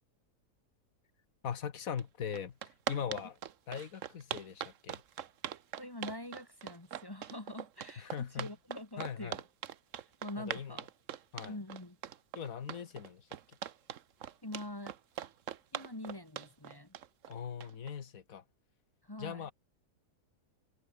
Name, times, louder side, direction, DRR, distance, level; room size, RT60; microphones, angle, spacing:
voice 1, 1.4-3.4 3.7-5.0 8.0-8.5 9.0-9.4 10.4-10.8 11.3-11.6 12.3-13.3 17.3-18.4 19.2-19.5, left 7 dB, 60° left, 1.7 m, -40 dB
sound 1, 2.0-2.1 2.3-17.9, right 9 dB, 55° right, 1.1 m, -41 dB
voice 2, 5.8-9.3 10.2-10.8 11.5-12.0 14.4-14.9 15.7-16.9 19.0-19.5, left 1 dB, 15° left, 1.5 m, -44 dB
open air
omnidirectional pair, 1.7 m